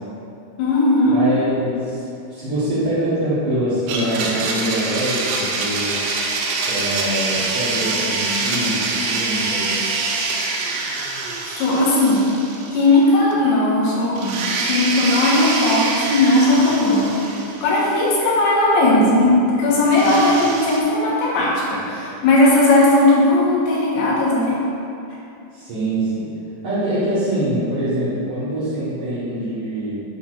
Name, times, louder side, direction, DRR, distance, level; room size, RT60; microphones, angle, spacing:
voice 1, 0.6-1.2 11.5-12.3 12.7-24.6, left 2 dB, 80° left, -6 dB, 3.4 m, -17 dB
voice 2, 1.1-2.0 2.3-6.0 6.7-9.8 25.5-26.3 26.6-29.9, right 1 dB, 60° right, -14 dB, 1.4 m, -24 dB
Domestic sounds home sounds, 3.9-13.0 13.3-13.4 14.2-18.1 19.9-20.8, right 3 dB, 80° right, 2.2 m, -25 dB
8.0 x 6.5 x 2.5 m, 2.7 s
omnidirectional pair, 4.6 m